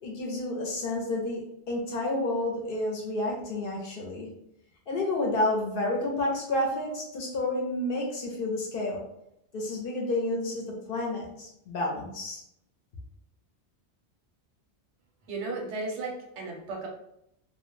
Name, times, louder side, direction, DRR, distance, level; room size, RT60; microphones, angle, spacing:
voice 1, 0.0-4.3 4.9-9.0 9.5-12.4, left 1 dB, 60° left, -1 dB, 0.7 m, -30 dB
voice 2, 15.3-16.9, right 3 dB, 90° right, 0 dB, 1.0 m, -35 dB
2.2 x 2.1 x 3.0 m, 0.78 s
omnidirectional pair, 1.1 m